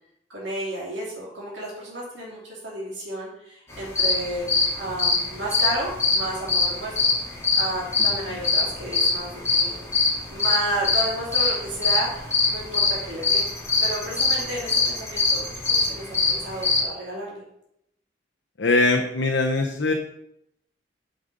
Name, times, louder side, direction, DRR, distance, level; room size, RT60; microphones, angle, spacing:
voice 1, 0.3-7.1 7.6-9.8 10.3-13.4 13.8-17.4, right 1 dB, 85° right, -5 dB, 2.9 m, -32 dB
sound 1, 3.7-16.8, left 4 dB, 15° left, 2.5 m, -22 dB
voice 2, 18.6-19.9, left 2 dB, 80° left, 2 dB, 0.9 m, -21 dB
8.6 x 5.2 x 5.3 m, 0.78 s
head